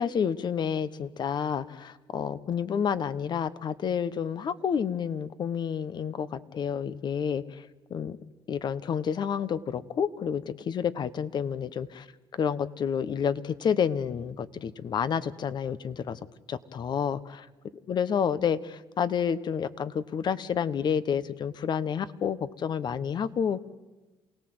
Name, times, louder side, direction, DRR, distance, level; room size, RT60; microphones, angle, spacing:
voice 1, 0.0-8.2 8.5-12.1 12.3-16.2 16.5-17.5 17.9-23.6, left 7 dB, 50° left, 15 dB, 1.2 m, -29 dB
28.0 x 18.0 x 7.9 m, 1.2 s
supercardioid pair, 80°, 10 cm